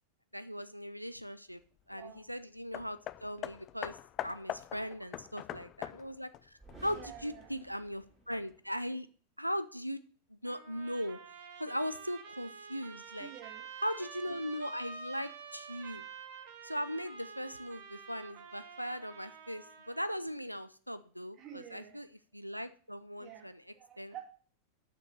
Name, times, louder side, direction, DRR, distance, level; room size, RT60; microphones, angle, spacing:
voice 1, 0.3-1.6 1.9-4.0 4.2-9.1 9.4-10.0 10.3-11.2 11.6-13.3 13.8-16.1 16.6-22.1 22.3-23.6 24.0-24.1, equal, 90° right, 13 dB, 0.4 m, -39 dB
voice 2, 1.9-2.2 4.8-5.7 6.9-7.7 13.2-13.8 21.3-22.0 23.2-24.2, right 10 dB, 30° right, 1 dB, 2.5 m, -51 dB
Hammer, 2.7-7.5 8.3-8.4, left 13 dB, 35° left, 0.4 m, -42 dB
sound 1, 6.6-8.6, right 2 dB, 10° right, 4.4 m, -55 dB
Trumpet, 10.5-20.1, right 5 dB, 55° right, 1.2 m, -49 dB
6.6 x 6.1 x 6.6 m, 0.43 s
figure-of-eight pair, 90°, 0 cm